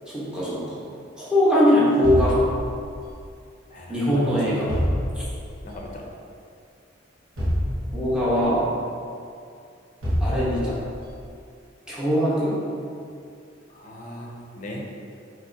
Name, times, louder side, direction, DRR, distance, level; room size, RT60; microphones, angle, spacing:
voice 1, 0.1-0.8 1.2-2.4 3.9-4.7 5.1-5.2 7.9-8.7 10.2-10.7 11.9-12.6, equal, 5° right, -9 dB, 1.0 m, -21 dB
sound 1, 2.0-3.2 4.7-5.6 7.4-8.5 10.0-11.0, equal, 90° right, 1.3 m, -26 dB
voice 2, 3.7-4.8 5.6-6.0 13.7-14.8, left 1 dB, 40° left, 0 dB, 0.6 m, -38 dB
5.5 x 3.0 x 2.7 m, 2.4 s
head